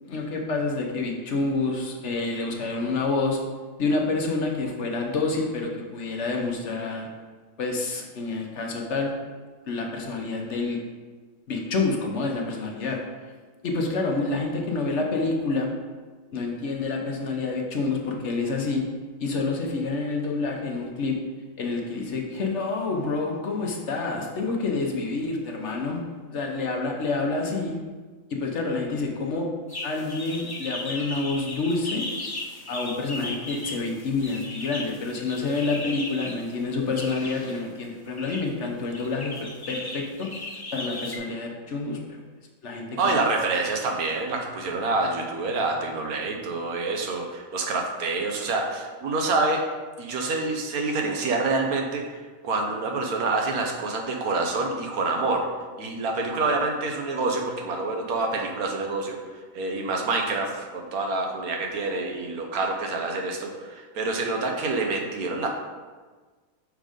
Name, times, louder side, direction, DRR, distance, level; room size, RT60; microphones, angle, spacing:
voice 1, 0.0-3.4 3.8-7.1 7.6-9.1 9.7-10.8 11.5-13.0 13.6-15.7 16.3-18.8 19.2-21.2 21.6-26.0 26.3-27.8 28.3-29.5 29.8-32.1 32.7-40.3 40.7-42.2 42.6-43.2, left 3 dB, 55° left, 1 dB, 1.1 m, -28 dB
sound 1, 29.7-36.4 36.9-37.6 38.0-38.4 38.9-41.2, left 2 dB, 20° left, 0.9 m, -36 dB
voice 2, 43.0-49.6 50.0-52.2 52.4-55.5 55.8-59.2 59.5-65.5, right 3 dB, 90° right, 2 dB, 1.4 m, -27 dB
6.3 x 3.8 x 5.0 m, 1.4 s
omnidirectional pair, 1.5 m